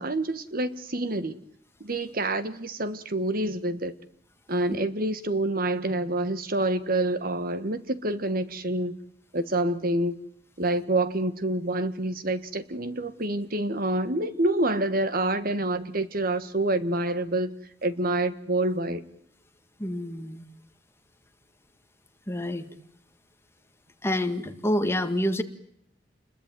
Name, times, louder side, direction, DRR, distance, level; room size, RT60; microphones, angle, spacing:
voice 1, 0.0-1.4 1.8-3.9 4.5-9.0 9.3-10.2 10.6-17.5 17.8-19.0, right 1 dB, 55° right, 12 dB, 1.5 m, -27 dB
voice 2, 19.8-20.4 22.3-22.7 24.0-25.4, left 1 dB, 15° left, 7 dB, 1.9 m, -27 dB
29.5 x 22.0 x 9.2 m, 0.70 s
head